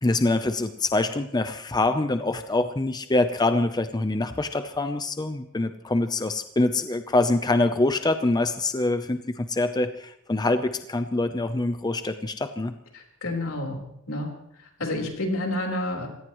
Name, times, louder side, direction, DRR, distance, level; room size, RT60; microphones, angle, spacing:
voice 1, 0.0-12.7, left 2 dB, 20° left, 9 dB, 0.6 m, -25 dB
voice 2, 12.9-14.3 14.6-16.1, left 1 dB, 75° left, 1 dB, 4.2 m, -30 dB
26.5 x 17.5 x 3.1 m, 0.79 s
head